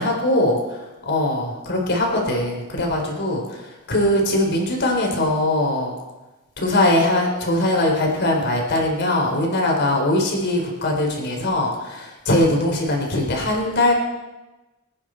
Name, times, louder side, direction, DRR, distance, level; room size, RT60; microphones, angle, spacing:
voice 1, 0.0-3.6 3.9-6.0 6.6-13.9, left 1 dB, 55° left, 0 dB, 3.9 m, -21 dB
26.5 x 9.9 x 4.5 m, 1.1 s
head